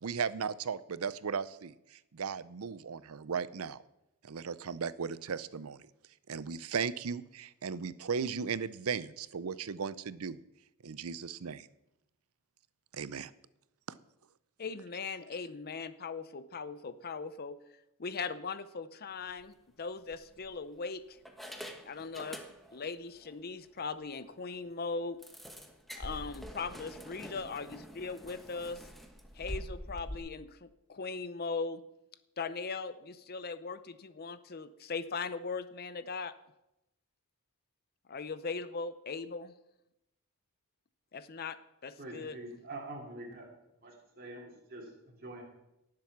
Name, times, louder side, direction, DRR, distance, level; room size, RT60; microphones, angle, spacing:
voice 1, 0.0-3.8 4.2-5.9 6.3-10.4 10.8-11.7 12.9-13.3, right 6 dB, 70° right, 16 dB, 0.6 m, -36 dB
voice 2, 14.6-17.6 18.0-21.2 21.8-22.4 22.7-25.2 26.0-28.8 29.4-31.8 32.4-36.3 38.1-39.5 41.1-41.6 41.8-42.4, left 4 dB, 45° left, 13 dB, 0.6 m, -39 dB
sound 1, 19.2-19.4 20.1-20.8 21.2-22.9 23.2-23.4 23.8-23.9 24.2-24.3 25.2-30.2, equal, ahead, 1.1 m, -45 dB
voice 3, 42.0-43.5 43.8-45.4, right 2 dB, 45° right, -2 dB, 2.7 m, -45 dB
17.5 x 7.6 x 6.0 m, 0.88 s
head